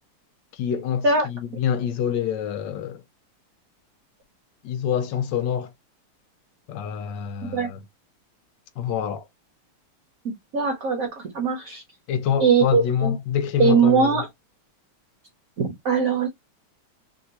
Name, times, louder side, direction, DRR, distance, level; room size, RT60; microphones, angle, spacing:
voice 1, 0.5-3.0 4.6-5.7 6.7-7.8 8.8-9.3 12.1-14.2, left 8 dB, 75° left, 1.1 m, -26 dB
voice 2, 10.2-11.8 12.4-13.1 13.6-14.3 15.6-16.3, right 5 dB, 55° right, 1.0 m, -21 dB
3.6 x 2.8 x 2.7 m
omnidirectional pair, 2.4 m